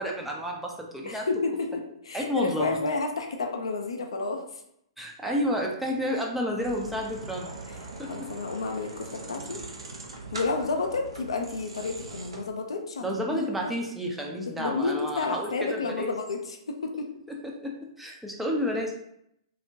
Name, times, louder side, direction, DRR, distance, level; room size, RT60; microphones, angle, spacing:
voice 1, 0.0-1.2 2.1-2.8 5.0-7.5 8.0-8.3 13.0-16.1 17.3-18.9, equal, 5° right, -1 dB, 0.4 m, -31 dB
voice 2, 1.1-4.4 8.1-9.6 10.3-13.7 14.5-17.1, left 3 dB, 70° left, 4 dB, 0.4 m, -31 dB
sound 1, 6.6-12.4, right 3 dB, 70° right, 0.5 m, -41 dB
2.3 x 2.1 x 2.6 m, 0.74 s
figure-of-eight pair, 115°, 3 cm